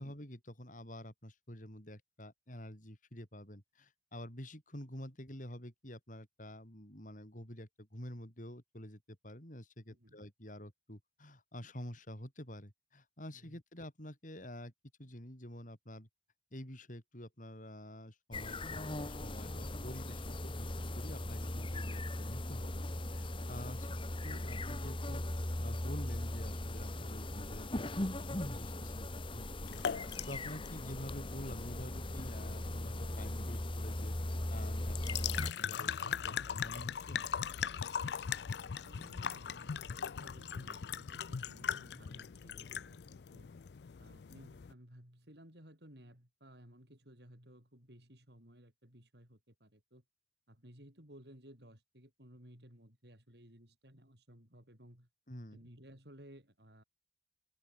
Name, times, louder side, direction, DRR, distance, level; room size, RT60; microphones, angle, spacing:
voice 1, 0.0-14.7 15.0-16.1 16.5-20.7 20.9-23.9 24.2-25.2 25.6-29.8 30.3-34.2 34.5-37.3 55.3-55.6, left 1 dB, 45° left, 7.9 m, -48 dB
voice 2, 9.9-10.2 13.3-13.6 36.3-36.7 38.4-43.5 44.0-50.0 50.5-55.1 55.5-56.8, equal, 65° right, 7.6 m, -58 dB
sound 1, 18.3-35.5, left 1 dB, 30° left, 1.5 m, -39 dB
sound 2, 29.7-44.7, left 7 dB, 65° left, 0.5 m, -41 dB
open air
head